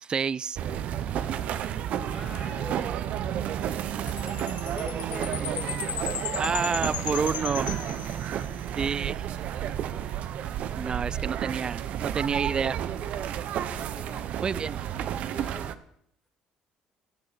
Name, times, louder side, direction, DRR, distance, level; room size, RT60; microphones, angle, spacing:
voice 1, 0.0-0.6 6.4-7.7 8.8-9.3 10.8-12.8 14.4-14.8, right 6 dB, 35° right, 23 dB, 0.3 m, -29 dB
sound 1, 0.6-15.8, right 10 dB, 65° right, 0.7 m, -31 dB
voice 2, 1.8-3.0 4.2-5.8 6.1-7.8 10.8-11.4 13.7-14.6 14.9-15.8, left 2 dB, 20° left, -3 dB, 2.3 m, -44 dB
Chime, 4.1-8.6, left 11 dB, 60° left, 0.4 m, -36 dB
15.5 x 8.6 x 4.2 m, 0.71 s
supercardioid pair, 80°, 3 cm